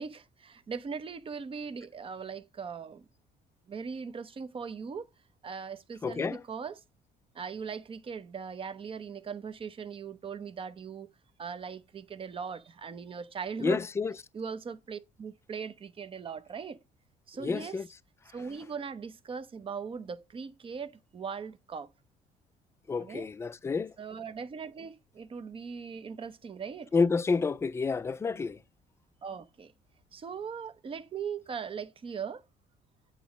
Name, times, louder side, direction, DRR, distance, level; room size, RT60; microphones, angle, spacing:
voice 1, 0.0-3.1 3.7-5.1 5.4-6.8 7.3-11.1 11.4-13.8 14.3-16.8 17.3-17.8 18.3-21.9 23.0-23.3 24.0-26.9 29.2-29.7 30.1-32.4, right 6 dB, 30° right, 0.7 m, -39 dB
voice 2, 6.0-6.4 13.6-14.1 17.4-17.8 22.9-23.9 26.9-28.6, left 4 dB, 15° left, 0.3 m, -29 dB
8.3 x 3.1 x 5.0 m
cardioid pair, 110°, 17 cm